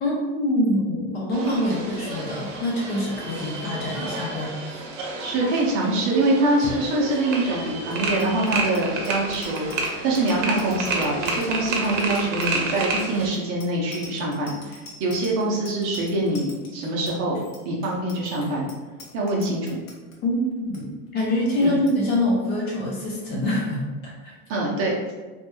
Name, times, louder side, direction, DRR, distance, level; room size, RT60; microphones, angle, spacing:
voice 1, 0.0-4.8 20.2-24.3, left 1 dB, 25° left, -3 dB, 0.5 m, -25 dB
sound 1, 1.3-13.3, right 3 dB, 65° right, 0.9 m, -30 dB
voice 2, 5.2-9.7 10.0-18.7 19.1-19.8 21.6-21.7 24.5-25.0, right 2 dB, 35° right, -2 dB, 0.6 m, -24 dB
Bicycle bell, 7.8-20.2 20.5-20.8 21.1-21.4 21.6-22.0, left 3 dB, 80° left, 1.1 m, -45 dB
3.2 x 3.0 x 2.2 m, 1.3 s
supercardioid pair, 140°, 40 cm